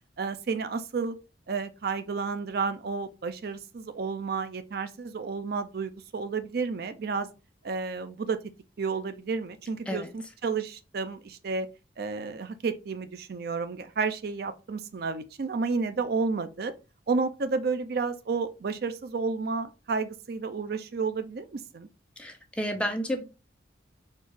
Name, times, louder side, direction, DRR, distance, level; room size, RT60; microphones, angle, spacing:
voice 1, 0.2-1.2 1.5-7.3 7.6-8.4 8.8-11.7 12.0-16.7 17.1-21.9, right 4 dB, 55° right, 0.4 m, -31 dB
voice 2, 22.2-23.2, equal, 5° left, 0.6 m, -31 dB
4.4 x 2.4 x 4.8 m
head